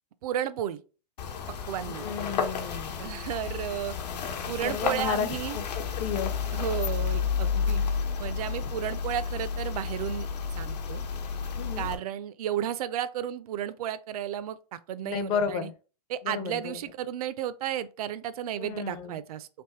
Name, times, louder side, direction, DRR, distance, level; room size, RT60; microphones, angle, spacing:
voice 1, 0.2-0.8 1.7-2.0 3.0-3.9 4.5-5.6 6.5-7.8 8.2-10.3 10.5-11.0 11.8-15.7 16.1-19.5, right 10 dB, 65° right, 0.5 m, -33 dB
sound 1, 1.2-12.0, left 6 dB, 90° left, 1.0 m, -31 dB
voice 2, 2.0-3.0 4.6-6.3 7.5-7.6 11.6-11.9 15.0-15.7 16.2-16.8 18.6-19.2, left 7 dB, 30° left, 0.5 m, -32 dB
3.4 x 3.0 x 4.4 m
supercardioid pair, 155°, 21 cm